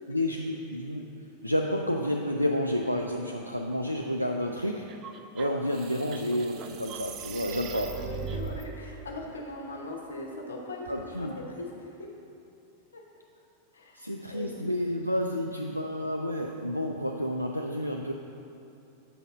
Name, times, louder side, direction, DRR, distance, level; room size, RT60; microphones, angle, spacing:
voice 1, 0.1-1.0 1.4-4.9 5.3-7.9 10.9-11.3 13.9-18.1, left 1 dB, 90° left, 1 dB, 0.3 m, -30 dB
sound 1, 4.9-8.6, right 7 dB, 35° right, 0.4 m, -39 dB
voice 2, 7.3-11.3 11.6-12.1 12.9-13.0 13.7-14.6, left 2 dB, 70° left, 0 dB, 0.9 m, -40 dB
7.4 x 4.2 x 5.1 m, 2.7 s
figure-of-eight pair, 90°, 0 cm